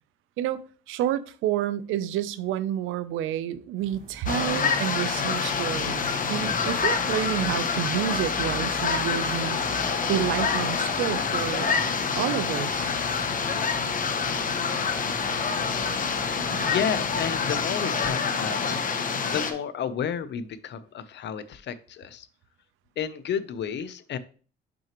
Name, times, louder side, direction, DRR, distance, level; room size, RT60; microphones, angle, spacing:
voice 1, 0.4-9.6 10.1-11.7 12.2-12.9, right 11 dB, 85° right, 0.5 m, -29 dB
sound 1, 3.8-17.8, right 3 dB, 50° right, 2.8 m, -45 dB
sound 2, 4.3-19.5, left 5 dB, 45° left, 0.9 m, -27 dB
voice 2, 16.6-22.3 23.0-24.2, left 8 dB, 60° left, 0.6 m, -31 dB
6.2 x 5.7 x 3.0 m
cardioid pair, 90°, 20 cm